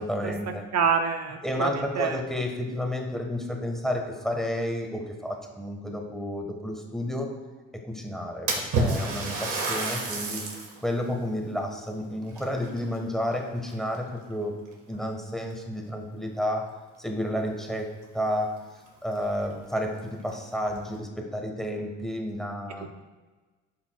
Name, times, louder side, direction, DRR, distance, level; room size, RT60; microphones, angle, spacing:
voice 1, 0.0-0.6 1.4-7.3 7.7-10.4 10.8-14.6 14.9-16.7 17.0-17.9 18.1-18.6 19.0-22.9, equal, ahead, 2 dB, 1.4 m, -31 dB
voice 2, 0.7-1.7 2.0-2.2, right 6 dB, 60° right, 5 dB, 0.7 m, -25 dB
Splash splatter, 8.5-10.8 11.3-11.4 12.3-13.3 13.7-14.1 14.9-15.0 15.5-15.6 17.8-17.9 18.2-18.3 18.9-19.0 19.4-19.5 20.2-20.8, right 2 dB, 80° right, 1.6 m, -29 dB
12.0 x 5.6 x 2.4 m, 1.3 s
cardioid pair, 90°, 30 cm